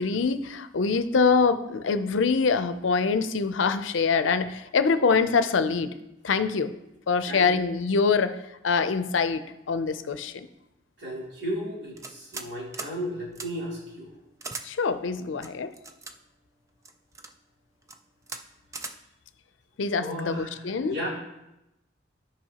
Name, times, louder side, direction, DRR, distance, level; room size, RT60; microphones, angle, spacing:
voice 1, 0.0-6.0 6.2-6.7 7.1-10.5 14.6-15.7 19.8-21.0, left 5 dB, 85° left, 11 dB, 0.5 m, -24 dB
voice 2, 11.0-14.1 20.0-21.1, equal, 80° right, -5 dB, 3.0 m, -34 dB
sound 1, 12.0-12.5 12.7-12.9 13.3-13.5 14.4-14.7 15.4-16.1 16.8-17.3 17.8-18.0 18.3-18.4 18.7-18.9, right 3 dB, 15° right, 0.4 m, -38 dB
13.0 x 5.1 x 2.9 m, 0.91 s
head